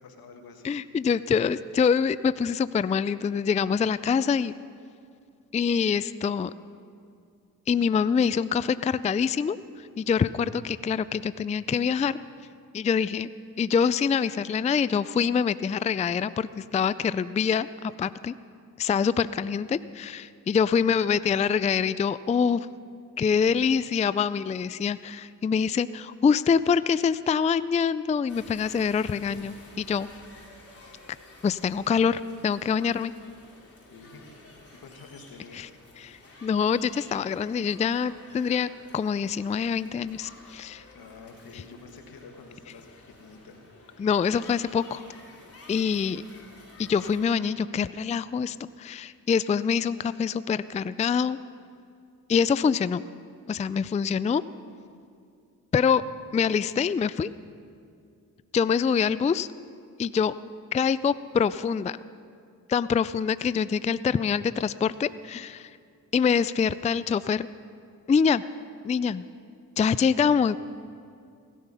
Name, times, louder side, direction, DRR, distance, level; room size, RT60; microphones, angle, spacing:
voice 1, 0.0-0.8 20.7-21.1 30.1-30.2 33.9-35.6 40.9-43.6, left 4 dB, 80° left, 4 dB, 1.8 m, -48 dB
voice 2, 0.6-4.5 5.5-6.5 7.7-12.2 12.7-13.3 13.6-18.3 18.8-22.7 23.2-30.1 31.4-33.1 35.5-35.7 36.0-40.8 44.0-45.0 45.7-46.2 46.8-51.4 52.3-53.0 53.5-54.4 55.7-56.0 56.3-57.4 58.5-59.5 60.0-60.4 60.7-62.0 62.7-65.7 66.1-67.5 68.1-68.4 68.8-69.2 69.8-70.6, left 6 dB, 20° left, 16 dB, 0.3 m, -25 dB
sound 1, 28.3-47.4, left 2 dB, 40° left, 3.7 m, -51 dB
17.0 x 13.0 x 5.6 m, 2.4 s
cardioid pair, 55°, 36 cm